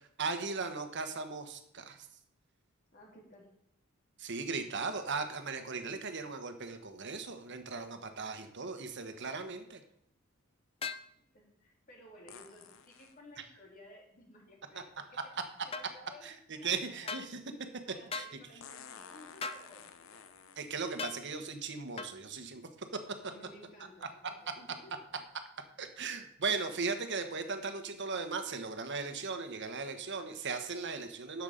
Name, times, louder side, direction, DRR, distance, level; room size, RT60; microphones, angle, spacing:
voice 1, 0.2-2.0 4.2-9.8 16.2-16.3 16.6-17.4 18.1-18.2 20.6-22.7 25.8-31.4, right 4 dB, 55° right, 7 dB, 1.3 m, -37 dB
voice 2, 2.9-3.5 11.2-15.2 15.6-17.2 17.8-20.3 23.2-24.9, left 1 dB, 40° left, -2 dB, 3.3 m, -56 dB
sound 1, 10.8-11.1 15.7-15.9 17.1-17.3 18.1-18.3 19.4-19.7 21.0-21.2 22.0-22.1, left 4 dB, 25° left, 0.6 m, -38 dB
sound 2, 12.3-13.2 15.2-15.3 18.6-21.1 22.0-22.1 22.8-23.1 24.0-24.1, left 6 dB, 65° left, 0.8 m, -53 dB
11.5 x 7.3 x 5.1 m, 0.75 s
head